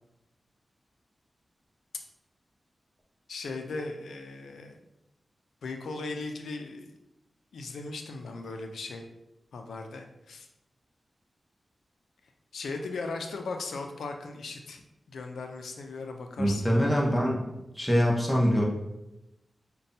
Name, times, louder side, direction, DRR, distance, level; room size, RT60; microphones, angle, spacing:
voice 1, 3.3-4.8 5.6-6.9 7.5-9.1 9.5-10.5 12.5-14.8 15.1-16.6, left 3 dB, 90° left, 4 dB, 0.4 m, -37 dB
voice 2, 16.4-17.4 17.7-18.6, equal, 15° left, -2 dB, 0.9 m, -24 dB
5.1 x 2.2 x 2.7 m, 0.91 s
cardioid pair, 45°, 0 cm